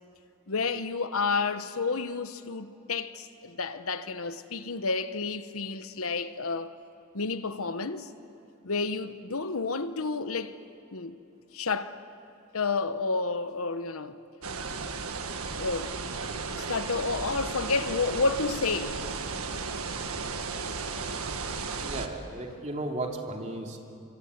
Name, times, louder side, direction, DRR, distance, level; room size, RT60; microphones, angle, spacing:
voice 1, 0.5-6.7 7.1-8.1 8.6-10.6 10.9-11.2 11.5-12.0 12.5-14.2 15.6-16.0 16.5-19.0, left 4 dB, 75° left, 1.1 m, -30 dB
sound 1, 14.4-22.1, right 4 dB, 80° right, 1.7 m, -34 dB
voice 2, 21.8-23.8, right 2 dB, 35° right, 2.7 m, -35 dB
26.0 x 24.5 x 8.2 m
head